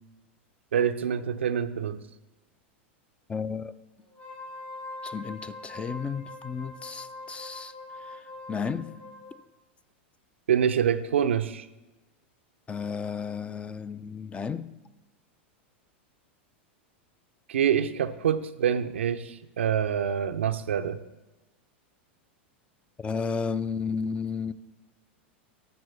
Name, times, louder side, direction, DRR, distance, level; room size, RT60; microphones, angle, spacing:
voice 1, 0.7-2.0 10.5-11.7 17.5-21.0, right 8 dB, 85° right, 0.5 m, -26 dB
voice 2, 3.3-3.7 5.0-7.7 8.1-8.2 8.5-8.9 12.7-14.7 23.0-24.5, left 5 dB, 20° left, 0.4 m, -33 dB
Wind instrument woodwind instrument, 4.1-9.3, left 2 dB, 40° left, 3.4 m, -43 dB
12.0 x 6.1 x 3.3 m
hypercardioid pair, 100°, 6 cm